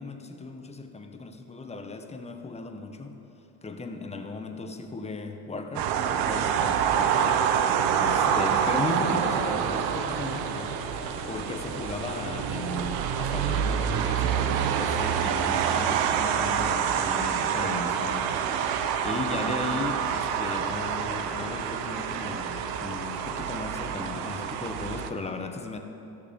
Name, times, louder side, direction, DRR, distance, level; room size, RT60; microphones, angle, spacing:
voice 1, 0.0-3.2 3.6-7.3 8.0-10.8 11.3-18.4 19.0-25.8, left 3 dB, 15° left, 5 dB, 1.1 m, -36 dB
sound 1, 5.7-25.1, right 8 dB, 65° right, 1.0 m, -27 dB
sound 2, 5.8-23.4, left 3 dB, 75° left, 2.5 m, -43 dB
14.0 x 6.9 x 8.6 m, 2.9 s
supercardioid pair, 105°, 39 cm